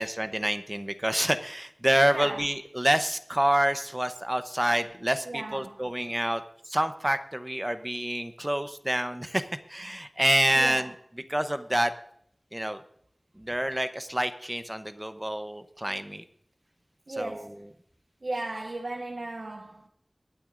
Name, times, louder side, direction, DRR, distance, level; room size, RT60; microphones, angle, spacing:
voice 1, 0.0-6.4 6.7-9.4 9.7-10.9 11.3-11.9 12.5-12.8 13.4-16.2 17.2-17.5, right 1 dB, 20° right, 0.8 m, -27 dB
voice 2, 2.1-2.4 5.2-5.9 10.5-10.9 17.1-17.6 18.2-19.9, right 2 dB, 80° right, 1.2 m, -36 dB
23.0 x 9.1 x 2.5 m
wide cardioid pair, 45°, 0 cm